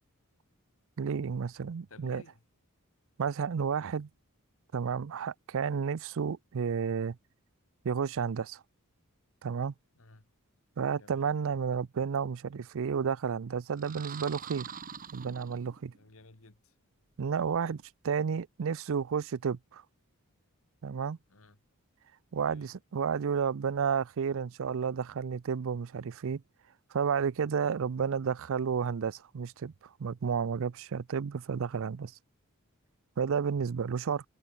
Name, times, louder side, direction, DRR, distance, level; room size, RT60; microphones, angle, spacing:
voice 1, 1.0-2.2 3.2-4.1 4.7-7.2 7.8-8.6 9.4-9.7 10.8-14.7 15.1-15.9 17.2-19.8 20.8-21.2 22.3-26.4 26.9-29.7 30.0-32.1 33.2-34.2, right 6 dB, 65° right, 0.5 m, -31 dB
voice 2, 1.9-2.4 10.0-10.2 10.9-11.2 15.9-16.7 21.3-21.6 22.5-22.7, left 3 dB, 65° left, 2.1 m, -56 dB
sound 1, 13.7-16.0, right 7 dB, 40° right, 1.3 m, -44 dB
head